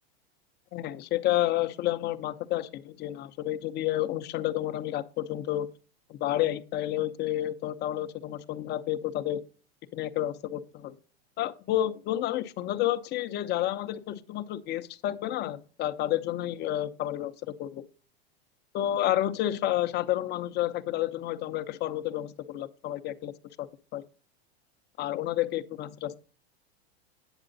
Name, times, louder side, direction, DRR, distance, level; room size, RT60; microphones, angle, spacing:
voice 1, 0.7-5.7 6.1-9.4 9.9-10.9 11.4-17.8 18.7-23.7 23.9-24.0 25.0-26.2, left 13 dB, 35° left, 10 dB, 0.7 m, -30 dB
9.0 x 7.4 x 3.9 m, 0.38 s
supercardioid pair, 130°, 32 cm